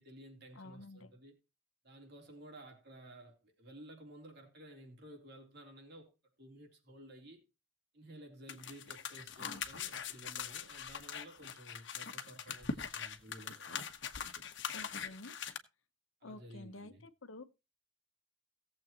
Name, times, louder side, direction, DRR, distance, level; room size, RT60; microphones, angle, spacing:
voice 1, 0.0-1.3 1.8-6.1 6.4-7.4 7.9-13.8 16.2-17.0, right 1 dB, 55° right, 3.5 m, -54 dB
voice 2, 0.5-1.1 14.7-15.3 16.2-17.4, left 2 dB, 80° left, 1.0 m, -50 dB
sound 1, 8.5-15.6, left 6 dB, 65° left, 1.2 m, -42 dB
18.0 x 7.6 x 3.0 m
head